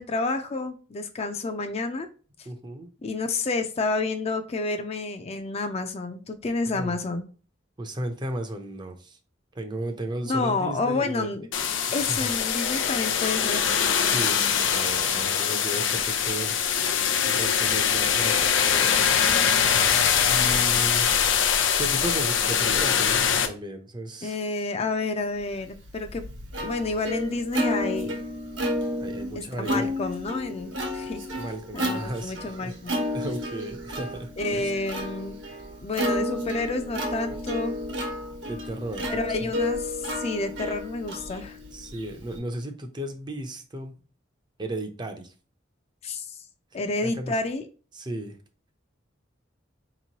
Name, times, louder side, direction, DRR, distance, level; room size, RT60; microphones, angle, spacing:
voice 1, 0.0-2.1 3.0-7.2 10.2-11.5 11.9-13.8 24.2-26.2 26.6-28.2 29.6-31.2 31.7-33.0 34.4-35.4 35.8-37.8 39.1-41.6 46.0-46.4 46.7-47.7, left 3 dB, 35° left, 0.4 m, -29 dB
voice 2, 2.5-2.9 6.7-7.0 7.8-9.2 9.5-11.3 11.9-12.3 14.0-19.3 19.6-19.8 20.2-21.2 21.8-24.4 29.0-29.9 31.4-32.8 33.1-34.7 38.5-39.5 41.7-43.9 44.6-45.3 47.0-47.4 47.9-48.4, right 1 dB, 25° right, 0.5 m, -35 dB
sound 1, 11.5-23.5, left 7 dB, 80° left, 0.6 m, -23 dB
Plucked string instrument, 25.6-42.4, left 1 dB, 80° right, 1.1 m, -32 dB
4.4 x 3.0 x 2.8 m
head